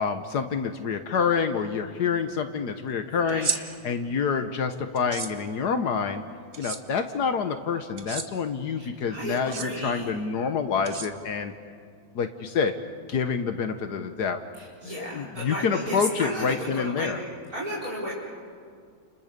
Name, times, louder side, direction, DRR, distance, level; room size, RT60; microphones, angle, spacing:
voice 1, 0.0-3.5 3.8-6.2 6.6-11.5 12.1-12.7 13.1-14.4 14.9-17.2, left 6 dB, 75° left, 7 dB, 1.7 m, -27 dB
voice 2, 3.1-3.5 8.8-10.0 14.5-17.2 17.5-18.1, equal, 60° right, -6 dB, 5.4 m, -34 dB
sound 1, 3.3-3.6 5.0-5.3 6.5-6.8 8.0-8.3 9.4-9.7 10.9-11.5, right 4 dB, 35° right, 1.3 m, -31 dB
30.0 x 29.0 x 6.8 m, 2.1 s
omnidirectional pair, 1.8 m